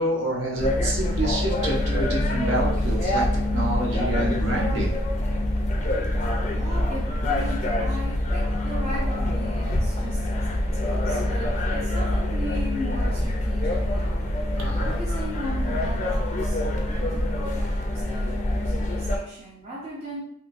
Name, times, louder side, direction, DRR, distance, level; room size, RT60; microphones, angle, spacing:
voice 1, 0.0-3.3 3.5-4.9 14.6-14.9, right 1 dB, 60° right, -2 dB, 0.8 m, -27 dB
sound 1, 0.6-19.2, left 1 dB, 35° left, 0.4 m, -25 dB
voice 2, 6.5-14.3 14.8-20.2, equal, 30° right, -5 dB, 0.5 m, -37 dB
3.5 x 2.6 x 2.5 m, 0.72 s
head